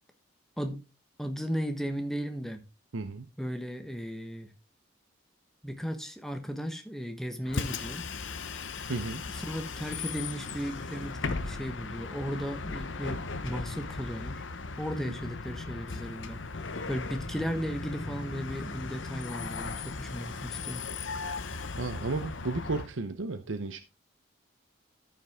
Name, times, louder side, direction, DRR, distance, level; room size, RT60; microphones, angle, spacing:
voice 1, 1.2-2.6 3.4-4.5 5.6-8.1 9.3-14.4 14.8-16.4 16.9-20.8, equal, ahead, 1.2 m, -35 dB
voice 2, 2.9-3.3 8.9-9.2 15.1-15.2 21.8-23.8, right 3 dB, 85° right, 0.8 m, -33 dB
Bus, 7.4-22.9, left 4 dB, 75° left, 0.9 m, -37 dB
14.0 x 5.8 x 3.6 m
head